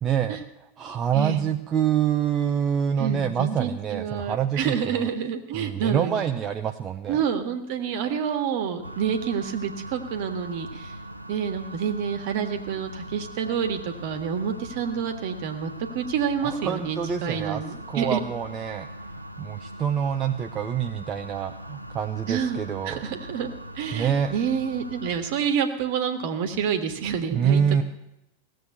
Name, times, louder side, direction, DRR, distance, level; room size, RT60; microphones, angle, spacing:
voice 1, 0.0-0.4 0.8-5.1 5.5-7.2 16.4-17.6 17.9-18.9 19.4-23.0 23.9-24.3 27.3-27.8, right 8 dB, 25° right, 6 dB, 0.7 m, -26 dB
voice 2, 3.0-6.3 7.1-10.9 11.3-18.2 19.7-19.8 22.3-22.6 22.8-27.8, right 7 dB, 50° right, 8 dB, 1.7 m, -28 dB
sound 1, 8.8-25.2, right 1 dB, 90° right, 0.7 m, -41 dB
17.0 x 7.8 x 9.1 m, 0.88 s
figure-of-eight pair, 90°, 0 cm